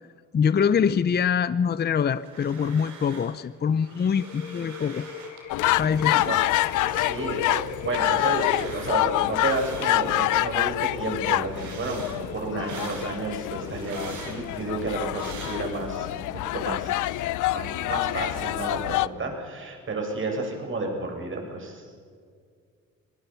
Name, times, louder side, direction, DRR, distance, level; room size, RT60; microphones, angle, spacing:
voice 1, 0.3-5.0 5.8-6.2, left 7 dB, 35° left, 15 dB, 0.6 m, -24 dB
sound 1, 2.0-3.4 3.7-5.4 5.8-10.5 10.9-16.1, right 5 dB, 75° right, 5.2 m, -44 dB
sound 2, 4.1-10.6, left 6 dB, 65° left, 5.4 m, -41 dB
sound 3, 5.5-19.1, left 16 dB, 80° left, 0.6 m, -27 dB
voice 2, 6.0-6.4 6.8-17.1 17.5-21.9, right 2 dB, 40° right, 2 dB, 6.9 m, -31 dB
26.0 x 19.0 x 5.8 m, 2.1 s
cardioid pair, 90°, 30 cm